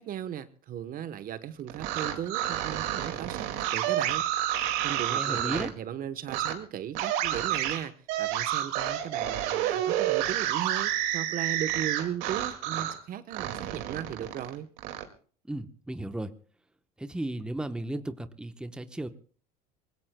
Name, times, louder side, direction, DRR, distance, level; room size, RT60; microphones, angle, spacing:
voice 1, 0.0-4.3 4.8-7.9 8.2-14.7, right 10 dB, 45° right, 13 dB, 1.0 m, -37 dB
sound 1, 1.7-5.7 6.3-6.5 6.9-13.0 13.3-15.0, right 12 dB, 75° right, 2.1 m, -29 dB
voice 2, 5.1-5.7 15.5-16.3 17.0-19.1, right 1 dB, 5° right, 9 dB, 0.9 m, -35 dB
24.5 x 20.0 x 2.2 m, 0.43 s
supercardioid pair, 105°, 20 cm